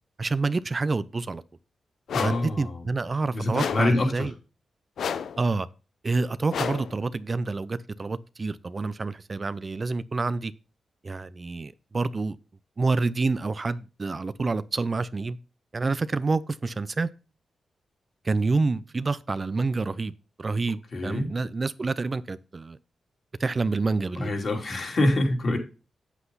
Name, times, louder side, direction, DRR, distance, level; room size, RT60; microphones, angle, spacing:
voice 1, 0.2-1.4 2.2-4.3 5.4-5.7 6.0-10.5 11.0-12.4 12.8-15.4 15.7-17.1 18.2-20.1 20.4-22.8 23.4-24.3, right 3 dB, 40° right, 0.5 m, -28 dB
sound 1, 2.1-2.5 3.5-4.0 5.0-5.4 6.5-7.0, left 7 dB, 80° left, 0.6 m, -31 dB
voice 2, 2.1-2.8 3.3-4.3 20.9-21.3 24.2-25.6, left 1 dB, 55° left, 3.1 m, -25 dB
8.2 x 7.8 x 3.9 m
cardioid pair, 70°, 0 cm